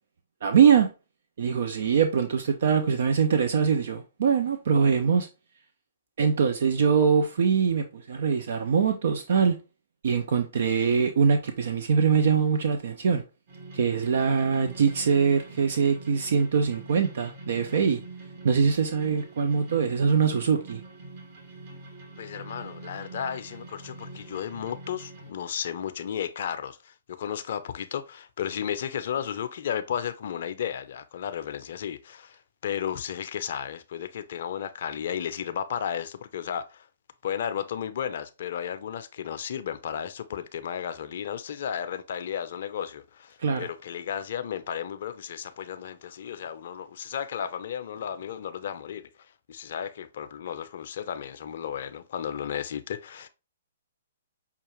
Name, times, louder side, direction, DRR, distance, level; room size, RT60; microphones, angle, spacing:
voice 1, 0.4-0.9 1.4-5.3 6.2-9.6 10.0-13.2 13.7-18.0 18.4-20.8 43.4-43.7, right 6 dB, 65° right, 0.4 m, -23 dB
sound 1, 13.5-25.3, right 2 dB, 50° right, 1.5 m, -44 dB
voice 2, 22.2-36.9 37.2-49.1 49.5-53.3, left 9 dB, 55° left, 0.4 m, -34 dB
5.6 x 2.3 x 3.0 m
hypercardioid pair, 125°, 0 cm